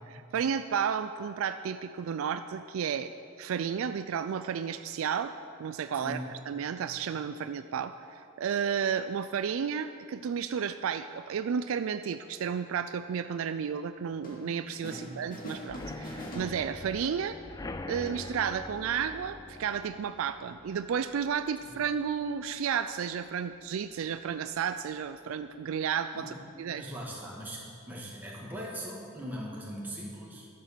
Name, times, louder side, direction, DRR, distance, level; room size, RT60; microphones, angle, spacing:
voice 1, 0.1-3.1 3.4-17.4 17.9-26.9, right 7 dB, 75° right, 10 dB, 0.3 m, -32 dB
sound 1, 14.2-15.0 15.3-17.1, equal, 40° left, 2.5 m, -42 dB
voice 2, 14.8-15.2 21.6-21.7 26.1-26.3 26.7-30.5, equal, 10° right, -5 dB, 2.2 m, -40 dB
sound 2, 15.7-23.3 23.7-24.0 24.3-24.4 24.8-24.9, left 2 dB, 15° left, 0.3 m, -45 dB
13.0 x 7.4 x 6.8 m, 2.5 s
head